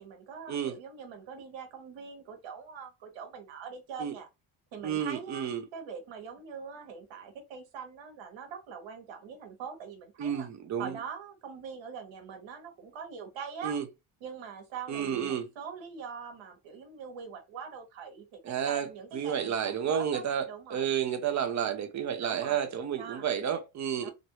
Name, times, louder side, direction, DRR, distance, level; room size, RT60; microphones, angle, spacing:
voice 1, 0.0-4.3 4.7-10.5 10.8-13.7 14.2-19.5 19.9-20.9 22.2-22.7 22.9-23.3 24.0-24.1, right 6 dB, 75° right, 1.3 m, -43 dB
voice 2, 4.8-5.7 10.2-11.0 13.6-13.8 14.9-15.5 18.4-18.9 19.1-20.4 20.7-24.1, right 8 dB, 40° right, 0.6 m, -31 dB
3.0 x 2.6 x 2.9 m
cardioid pair, 140°, 46 cm